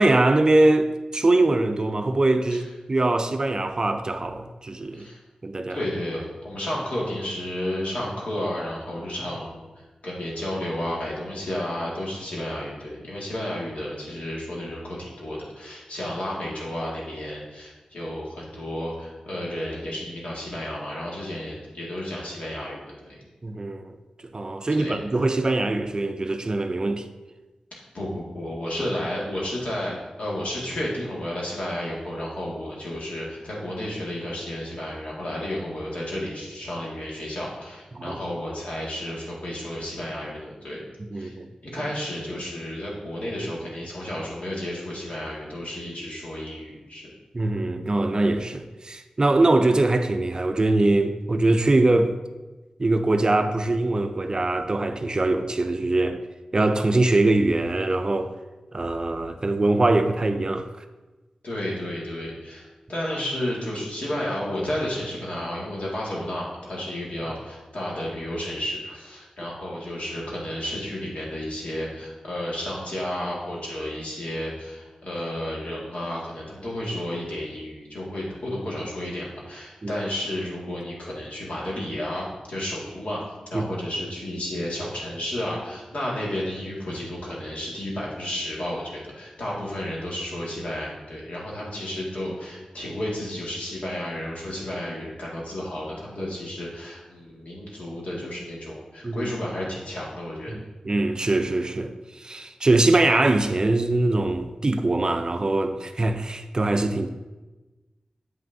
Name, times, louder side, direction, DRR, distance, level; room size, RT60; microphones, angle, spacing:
voice 1, 0.0-5.1 5.4-5.8 23.4-23.9 24.3-27.0 37.9-38.2 41.0-41.5 47.3-52.1 52.8-56.2 56.5-58.3 58.7-60.7 79.8-79.9 83.5-83.7 99.0-99.3 100.5-107.1, right 2 dB, 35° right, 0.4 m, -22 dB
voice 2, 5.7-9.7 10.0-23.2 24.8-25.0 27.9-40.8 41.1-41.4 41.6-47.1 61.4-83.2 83.5-100.6, left 1 dB, 75° left, 1.9 m, -32 dB
7.6 x 5.7 x 2.6 m
wide cardioid pair, 105°, 2 cm